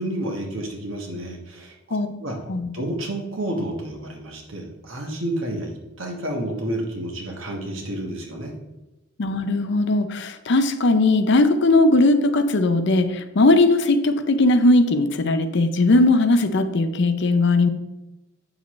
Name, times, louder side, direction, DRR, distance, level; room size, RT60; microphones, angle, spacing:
voice 1, 0.0-2.4 2.7-8.5, right 1 dB, 70° right, 2 dB, 1.5 m, -30 dB
voice 2, 9.2-17.7, left 2 dB, 60° left, 10 dB, 0.6 m, -18 dB
8.2 x 6.3 x 3.2 m, 1.0 s
head